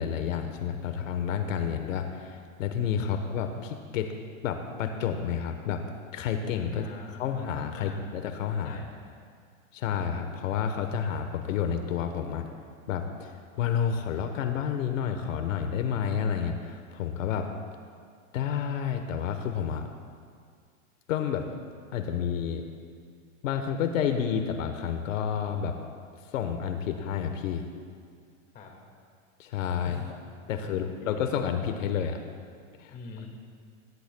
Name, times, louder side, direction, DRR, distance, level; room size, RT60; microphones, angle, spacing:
voice 1, 0.0-4.1 4.4-5.8 6.1-6.9 7.2-8.8 9.7-12.5 12.9-13.3 13.6-17.5 18.3-19.9 21.1-21.4 21.9-22.6 23.4-25.8 26.3-27.7 29.4-30.0 30.5-32.2 32.8-32.9, left 8 dB, 75° left, 6 dB, 1.1 m, -30 dB
voice 2, 6.7-7.2 7.7-8.1 8.6-9.3 28.5-28.7 29.8-30.2 30.5-31.1 32.9-33.3, left 4 dB, 20° left, 0 dB, 1.9 m, -45 dB
19.0 x 15.5 x 2.3 m, 2.1 s
supercardioid pair, 160°, 39 cm